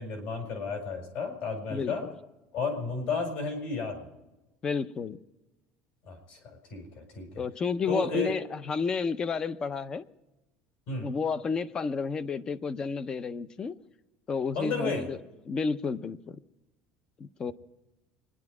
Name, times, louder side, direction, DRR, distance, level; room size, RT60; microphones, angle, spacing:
voice 1, 0.0-2.0 2.5-4.1 6.0-6.4 6.7-7.4 7.9-8.3 10.9-11.1 14.5-15.1, left 4 dB, 55° left, 5 dB, 4.7 m, -33 dB
voice 2, 4.6-5.2 7.4-10.1 11.0-13.7 14.3-15.2 15.5-16.4 17.2-17.5, left 5 dB, 20° left, 16 dB, 0.5 m, -31 dB
25.5 x 10.5 x 4.8 m, 1.0 s
cardioid pair, 175°, 4 cm